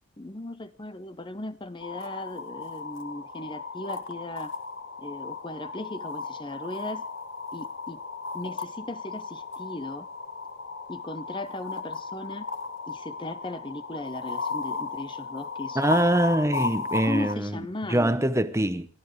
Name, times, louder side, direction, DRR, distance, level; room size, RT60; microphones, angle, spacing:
voice 1, 0.2-4.5 5.0-7.1 7.5-8.0 8.3-10.1 10.9-12.5 12.9-15.8 17.0-18.3, left 1 dB, 20° left, 0.7 m, -37 dB
sound 1, 1.8-17.3, left 4 dB, 55° left, 1.9 m, -35 dB
voice 2, 15.7-17.6 17.9-18.9, right 1 dB, 15° right, 0.8 m, -24 dB
30.0 x 13.0 x 3.2 m
head